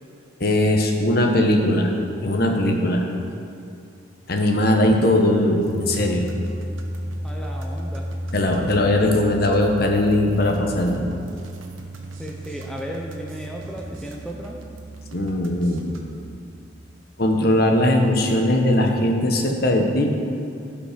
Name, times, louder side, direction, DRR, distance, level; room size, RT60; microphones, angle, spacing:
voice 1, 0.4-1.9 2.2-3.1 4.3-6.2 8.3-11.1 15.1-15.8 17.2-20.1, left 1 dB, 50° left, 2 dB, 1.1 m, -19 dB
sound 1, 5.6-16.3, right 1 dB, 85° right, 1.2 m, -34 dB
voice 2, 7.2-8.1 12.2-14.6, equal, 5° left, -1 dB, 0.7 m, -34 dB
15.5 x 5.3 x 5.1 m, 2.5 s
head